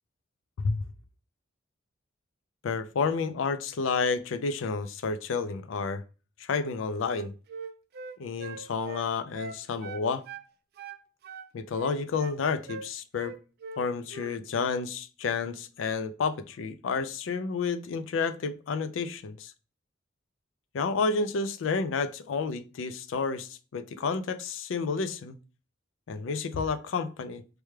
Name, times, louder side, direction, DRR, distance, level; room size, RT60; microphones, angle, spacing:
voice 1, 2.6-6.0 6.4-7.3 8.2-10.2 11.5-13.4 13.8-19.5 20.7-25.4 26.1-27.4, left 4 dB, 80° left, 0.4 m, -30 dB
Wind instrument woodwind instrument, 7.0-10.5 10.8-12.4 12.7-12.9 13.2-13.8 14.1-14.4, right 4 dB, 55° right, 0.3 m, -42 dB
4.6 x 2.2 x 3.2 m
head